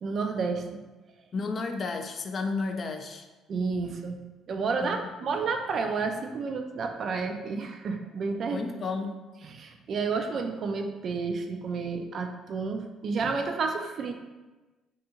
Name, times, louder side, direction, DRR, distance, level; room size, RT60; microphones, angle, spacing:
voice 1, 0.0-0.8 3.5-8.6 9.4-14.1, right 4 dB, 55° right, 5 dB, 0.3 m, -31 dB
voice 2, 1.3-3.3 4.8-5.1 8.5-9.2, left 4 dB, 45° left, 5 dB, 0.3 m, -32 dB
2.6 x 2.3 x 2.8 m, 1.2 s
supercardioid pair, 65°, 0 cm